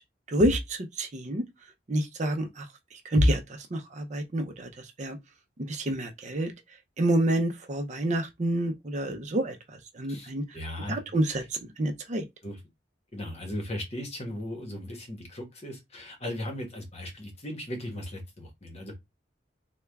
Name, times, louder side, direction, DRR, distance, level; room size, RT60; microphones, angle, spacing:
voice 1, 0.3-1.4 1.9-2.6 3.1-3.4 3.7-4.7 5.0-5.2 5.6-6.5 7.0-9.5 10.0-10.4 10.9-11.4 11.8-12.2, right 1 dB, 40° right, 0.5 m, -27 dB
voice 2, 10.1-11.5 12.4-12.7 13.1-19.0, left 1 dB, 35° left, 1.1 m, -37 dB
3.4 x 2.2 x 3.4 m
head